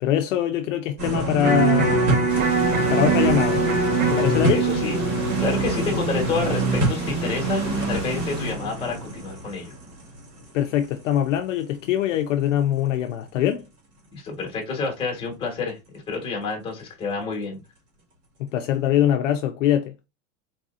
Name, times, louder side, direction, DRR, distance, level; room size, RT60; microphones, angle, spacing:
voice 1, 0.0-2.3 2.9-3.6 4.1-4.6 10.5-13.6 18.4-19.9, left 11 dB, 55° left, 0.5 m, -23 dB
sound 1, 1.0-10.8 11.2-11.3, right 2 dB, 40° right, 1.6 m, -26 dB
Electric guitar, 1.4-7.5, right 4 dB, 60° right, 1.3 m, -24 dB
sound 2, 2.3-8.5, equal, 15° right, 0.5 m, -40 dB
voice 2, 4.5-5.0 5.4-9.7 14.1-15.8 16.1-17.6, left 4 dB, 10° left, 1.1 m, -29 dB
4.1 x 2.7 x 2.4 m
supercardioid pair, 165°, 45 cm